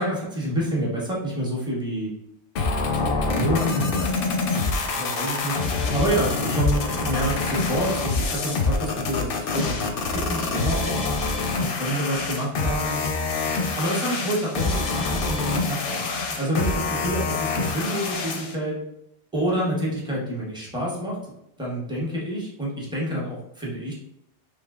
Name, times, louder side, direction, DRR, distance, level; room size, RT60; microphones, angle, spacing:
voice 1, 0.0-2.1 3.0-11.0 11.6-13.2 13.4-18.8 19.3-21.2 21.6-24.0, right 1 dB, 5° right, -5 dB, 0.8 m, -28 dB
sound 1, 2.6-18.6, left 3 dB, 65° left, 0.7 m, -26 dB
3.4 x 2.9 x 2.3 m, 0.81 s
omnidirectional pair, 1.1 m